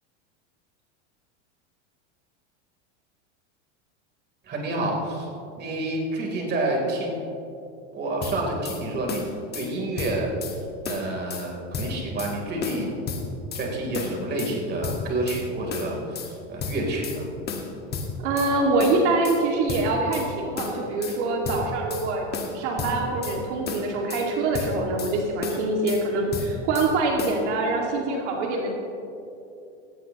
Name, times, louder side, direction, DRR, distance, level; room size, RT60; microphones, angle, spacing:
voice 1, 4.4-5.3 5.6-7.2 7.9-9.2 9.5-10.3 10.8-13.0 13.5-17.3, right 2 dB, 30° right, -1 dB, 3.6 m, -28 dB
sound 1, 8.2-8.8 9.1-9.7 10.0-10.6 10.9-11.5 11.7-12.3 12.6-13.7 13.9-14.5 14.8-15.4 15.7-16.3 16.6-17.2 17.5-18.5 18.8-19.4 19.7-20.3 20.6-21.2 21.4-22.1 22.3-23.4 23.7-24.3 24.5-25.1 25.4-26.0 26.3-26.9 27.2-27.4, left 5 dB, 25° left, 1.8 m, -32 dB
voice 2, 18.2-22.3 22.5-28.7, right 2 dB, 70° right, 0 dB, 2.2 m, -24 dB
18.0 x 17.0 x 3.0 m, 2.7 s
supercardioid pair, 135°, 36 cm